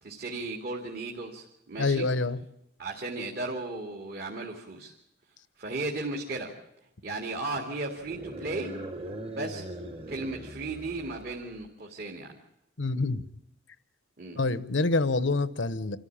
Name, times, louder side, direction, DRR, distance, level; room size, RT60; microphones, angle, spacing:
voice 1, 0.0-2.1 2.8-4.9 5.6-6.5 7.0-8.7 9.3-9.7 10.1-12.3 14.2-14.4, right 2 dB, 50° right, 1 dB, 2.3 m, -35 dB
voice 2, 1.8-2.4 12.8-13.2 14.4-16.0, left 3 dB, 70° left, 15 dB, 0.9 m, -26 dB
sound 1, 8.0-11.6, right 1 dB, 30° right, 1.4 m, -40 dB
26.5 x 14.5 x 8.6 m, 0.84 s
head